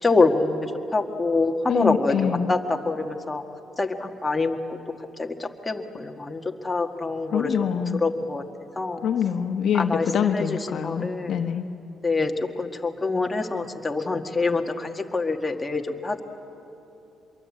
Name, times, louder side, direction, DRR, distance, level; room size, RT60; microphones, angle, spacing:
voice 1, 0.0-3.4 3.8-4.6 5.2-7.5 8.0-8.4 8.7-9.0 9.7-11.4 12.0-12.3 12.6-16.2, left 3 dB, 15° left, 2 dB, 1.8 m, -25 dB
voice 2, 1.7-2.5 7.3-8.0 9.0-11.6, left 7 dB, 70° left, 6 dB, 1.2 m, -25 dB
25.5 x 22.5 x 8.6 m, 2.9 s
cardioid pair, 90°, 0 cm